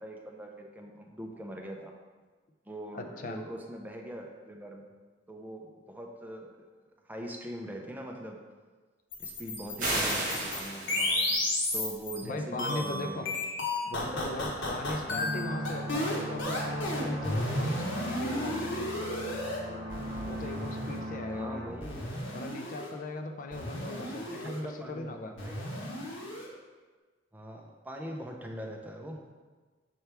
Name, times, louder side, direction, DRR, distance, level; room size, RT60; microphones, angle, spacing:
voice 1, 0.0-1.9 2.7-4.9 5.3-6.7 7.1-8.4 9.2-11.4 11.7-13.4 13.8-14.2 21.3-22.0 23.9-26.1 27.3-29.2, right 1 dB, 10° right, 1 dB, 0.5 m, -42 dB
voice 2, 2.9-3.4 12.2-13.2 13.9-19.4 20.2-21.7 22.3-25.3, left 2 dB, 45° left, 5 dB, 0.4 m, -39 dB
sound 1, 9.1-12.2 12.6-19.6 19.9-21.0 21.8-22.9 23.5-24.6 25.4-26.5, left 1 dB, 85° left, 1.3 m, -33 dB
sound 2, 9.8-11.4, right 1 dB, 45° right, 1.7 m, -32 dB
sound 3, 15.1-21.7, right 1 dB, 25° right, 1.8 m, -38 dB
6.7 x 4.5 x 3.4 m, 1.4 s
head